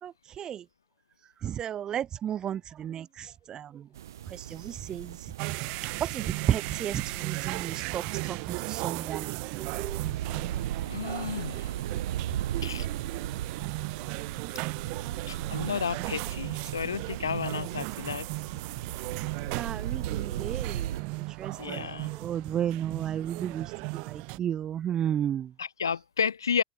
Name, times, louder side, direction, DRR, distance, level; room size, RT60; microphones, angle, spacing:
voice 1, 0.0-0.6 1.4-3.9 4.3-5.3 5.6-5.7 6.0-10.7 19.5-25.5, right 10 dB, 35° right, 2.8 m, -34 dB
sound 1, 3.9-21.0, right 11 dB, 75° right, 1.1 m, -37 dB
sound 2, 5.4-24.4, right 30 dB, 55° right, 4.7 m, -36 dB
voice 2, 10.8-11.7 12.6-12.9 15.3-18.3 21.6-22.1 25.6-26.6, left 7 dB, 85° left, 0.7 m, -32 dB
open air
figure-of-eight pair, 75°, 2 cm